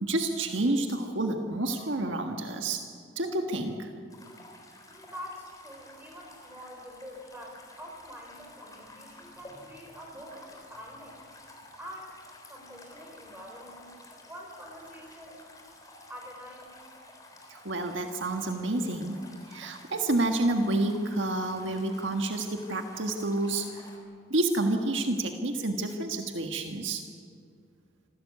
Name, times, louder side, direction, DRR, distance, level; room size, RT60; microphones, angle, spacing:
voice 1, 0.0-2.8 3.2-3.9 17.5-19.2 19.5-23.8 24.3-27.0, right 2 dB, 70° right, 4 dB, 1.6 m, -29 dB
sound 1, 4.1-24.0, left 2 dB, 20° left, 3.7 m, -51 dB
voice 2, 4.9-11.2 11.8-12.2 12.5-13.9 14.3-15.5 16.1-16.8, equal, 10° right, 0 dB, 5.7 m, -46 dB
26.0 x 17.0 x 8.4 m, 2.2 s
head